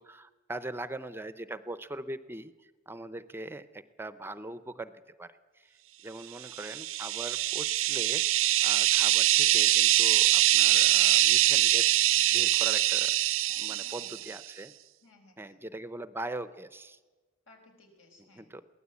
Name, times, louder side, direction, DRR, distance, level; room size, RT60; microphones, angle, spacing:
voice 1, 0.0-5.8 6.0-8.2 8.6-12.0 12.3-13.1 13.6-14.7 15.4-17.0 18.2-18.6, right 2 dB, 10° right, 13 dB, 0.6 m, -41 dB
sound 1, 6.5-14.3, right 15 dB, 80° right, 0.6 m, -24 dB
voice 2, 13.5-14.1 15.0-15.6 17.5-18.5, left 2 dB, 75° left, 2 dB, 5.2 m, -59 dB
22.5 x 17.5 x 8.4 m, 1.3 s
head